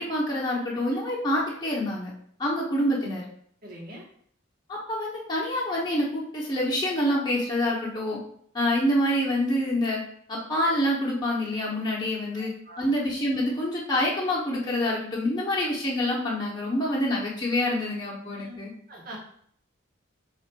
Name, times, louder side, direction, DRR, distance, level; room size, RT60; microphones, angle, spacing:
voice 1, 0.0-2.1 2.4-3.2 4.7-8.2 8.5-10.0 10.3-12.5 12.8-18.7, left 1 dB, 20° left, -5 dB, 1.0 m, -26 dB
voice 2, 3.6-4.0 12.3-12.9 18.4-18.6 18.9-19.2, right 1 dB, 50° right, -3 dB, 1.2 m, -43 dB
3.9 x 2.5 x 4.5 m, 0.62 s
head